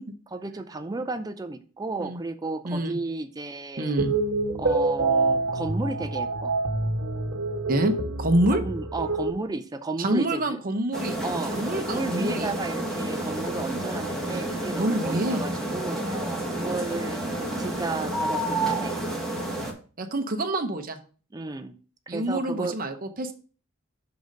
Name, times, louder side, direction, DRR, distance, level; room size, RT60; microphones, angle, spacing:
voice 1, 0.3-4.0 4.6-6.6 8.5-10.6 11.2-19.0 21.3-21.8 22.1-22.8, right 3 dB, 20° right, 9 dB, 0.4 m, -33 dB
voice 2, 2.6-3.0 3.8-4.1 7.7-8.6 10.0-11.2 11.5-12.5 14.3-14.4 14.7-15.4 20.0-21.0 22.1-23.3, right 1 dB, 40° right, 5 dB, 0.8 m, -26 dB
sound 1, 4.0-9.3, right 3 dB, 65° right, 1.2 m, -26 dB
sound 2, 10.9-19.7, right 1 dB, ahead, 1.4 m, -30 dB
6.9 x 3.9 x 6.2 m, 0.39 s
head